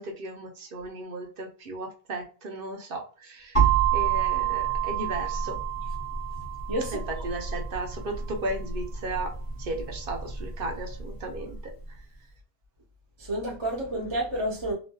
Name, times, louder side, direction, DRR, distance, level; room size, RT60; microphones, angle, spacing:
voice 1, 0.0-3.7 3.9-5.6 6.9-9.3 9.6-11.7, right 2 dB, 60° right, 0.9 m, -35 dB
sound 1, 3.6-11.4, right 8 dB, 30° left, 1.1 m, -28 dB
voice 2, 6.7-7.0 13.2-14.7, right 1 dB, 30° right, 0.9 m, -29 dB
3.0 x 2.5 x 2.2 m
omnidirectional pair, 1.1 m